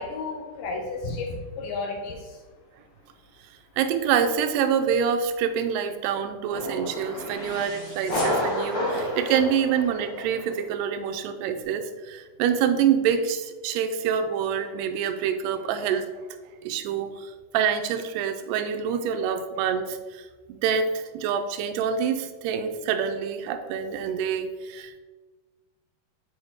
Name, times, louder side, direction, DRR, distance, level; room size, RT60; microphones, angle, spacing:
voice 1, 0.0-2.5, left 3 dB, 75° left, 1 dB, 2.4 m, -33 dB
voice 2, 3.8-16.1 16.6-25.0, right 7 dB, 85° right, 8 dB, 2.5 m, -26 dB
sound 1, 6.5-10.5, left 1 dB, 45° left, 1.5 m, -30 dB
7.9 x 4.7 x 3.5 m, 1.3 s
omnidirectional pair, 4.9 m